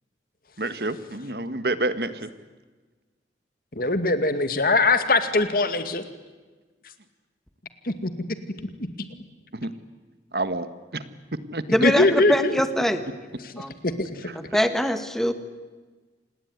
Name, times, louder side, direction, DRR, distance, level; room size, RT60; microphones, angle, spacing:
voice 1, 0.6-2.3 9.6-9.7 10.3-10.7 11.5-11.6, right 2 dB, 60° right, 12 dB, 1.6 m, -28 dB
voice 2, 3.7-6.0 7.8-8.1 11.8-12.5 13.5-13.6 14.0-14.3, left 2 dB, 55° left, 10 dB, 2.3 m, -21 dB
voice 3, 11.7-13.0 13.6-13.7 14.3-15.3, equal, ahead, 9 dB, 1.6 m, -23 dB
27.0 x 20.0 x 9.6 m, 1.3 s
head